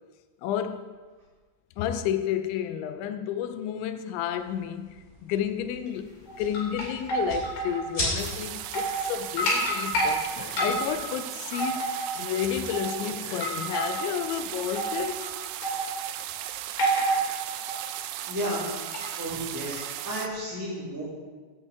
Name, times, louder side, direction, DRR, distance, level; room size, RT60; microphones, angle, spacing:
voice 1, 0.4-0.9 1.8-6.1 6.4-11.9 12.2-15.2, left 9 dB, 85° left, 9 dB, 3.1 m, -31 dB
sound 1, 4.3-11.1, left 1 dB, 25° left, 3.8 m, -39 dB
sound 2, 6.3-7.8 8.1-8.2 8.6-9.1 9.4-10.1 10.6-11.1 11.5-12.4 12.7-13.0 13.4-14.2 14.7-15.3 15.6-16.1 16.8-17.3 17.7-18.0 18.7-19.0 19.8-19.9, right 1 dB, 65° left, 5.1 m, -28 dB
sound 3, 8.2-20.3, right 13 dB, 85° right, 2.9 m, -37 dB
voice 2, 17.8-18.6 19.2-21.0, equal, 5° right, -12 dB, 3.6 m, -33 dB
16.5 x 9.8 x 3.6 m, 1.4 s
omnidirectional pair, 5.2 m